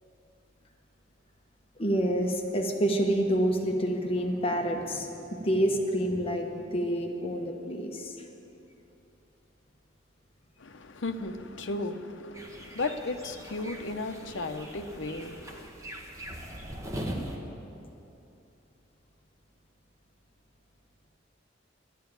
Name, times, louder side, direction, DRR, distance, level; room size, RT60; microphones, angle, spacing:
voice 1, 1.8-8.1, right 1 dB, 30° left, 1.0 m, -28 dB
voice 2, 10.6-15.7, left 2 dB, 70° left, 0.8 m, -35 dB
sound 1, 12.3-17.4, right 1 dB, 15° right, 1.2 m, -40 dB
11.5 x 9.3 x 9.2 m
head